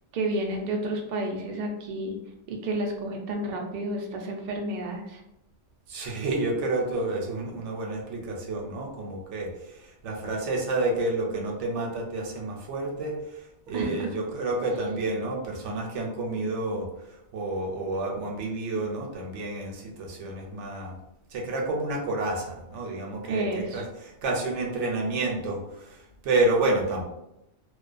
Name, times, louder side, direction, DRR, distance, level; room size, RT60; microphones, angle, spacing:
voice 1, 0.1-2.2 2.5-5.2 13.7-14.1 23.3-23.8, right 1 dB, 60° right, 1 dB, 0.5 m, -30 dB
voice 2, 5.9-20.9 21.3-27.1, right 2 dB, 85° right, 0 dB, 0.9 m, -29 dB
2.3 x 2.2 x 2.4 m, 0.86 s
omnidirectional pair, 1.2 m